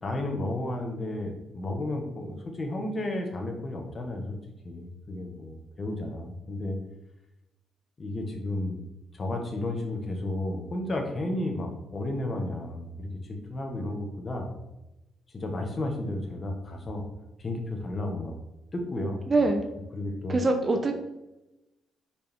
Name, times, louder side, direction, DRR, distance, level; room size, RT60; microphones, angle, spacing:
voice 1, 0.0-4.4 4.6-6.8 8.0-8.8 9.1-14.5 15.3-17.0 17.4-18.3 18.7-19.5 19.9-20.4, left 1 dB, 35° left, 2 dB, 1.6 m, -33 dB
voice 2, 19.3-19.6 20.3-20.9, right 2 dB, 30° right, 4 dB, 0.8 m, -23 dB
5.3 x 5.2 x 4.7 m, 0.95 s
cardioid pair, 90°, 0 cm